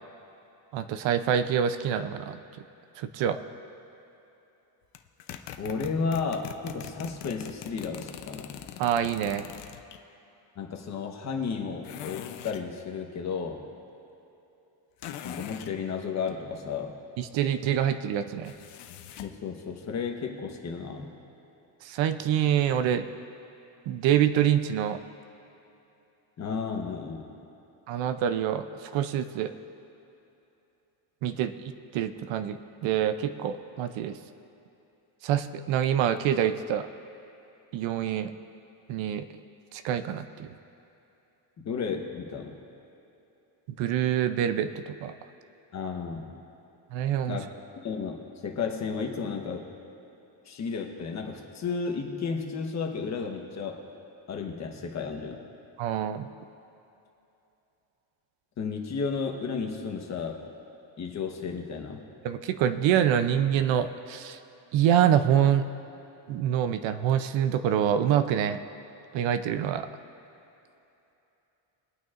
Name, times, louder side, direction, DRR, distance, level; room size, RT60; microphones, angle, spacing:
voice 1, 0.7-2.4 3.0-3.4 8.8-9.5 17.2-18.5 21.8-23.1 23.9-25.0 27.9-29.5 31.2-34.2 35.2-36.9 37.7-38.3 38.9-39.2 39.7-40.5 43.8-45.1 46.9-47.4 55.8-56.3 62.2-64.4 64.7-65.6 66.3-68.6 69.1-69.9, right 9 dB, 70° right, 10 dB, 0.7 m, -26 dB
sound 1, 4.9-10.0 11.8-12.7 15.0-15.7 18.4-19.4, left 11 dB, 60° left, 0.7 m, -42 dB
voice 2, 5.6-8.5 10.6-13.6 15.2-17.0 19.2-21.1 26.4-27.3 41.6-42.6 45.7-46.3 47.3-47.5 47.8-49.7 50.4-53.8 54.3-55.4 58.6-60.4 61.0-62.0, left 5 dB, 35° left, 3 dB, 1.1 m, -33 dB
23.0 x 9.1 x 2.5 m, 2.9 s
cardioid pair, 160°, 46 cm